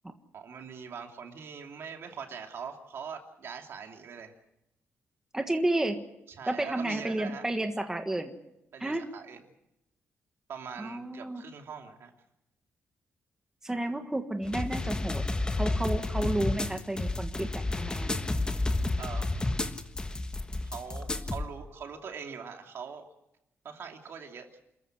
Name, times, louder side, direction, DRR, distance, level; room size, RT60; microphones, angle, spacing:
voice 1, 0.3-4.3 6.3-7.4 8.7-9.4 10.5-12.1 19.0-19.5 20.6-23.1 23.6-24.5, right 6 dB, 60° right, 4 dB, 2.7 m, -42 dB
voice 2, 5.3-6.0 6.5-8.3 8.8-9.0 10.8-11.4 13.6-15.2 15.5-18.1, right 1 dB, 10° right, 5 dB, 1.5 m, -31 dB
sound 1, 14.4-21.5, left 2 dB, 20° left, 1.3 m, -31 dB
28.0 x 14.5 x 7.8 m, 0.85 s
cardioid pair, 135°, 5 cm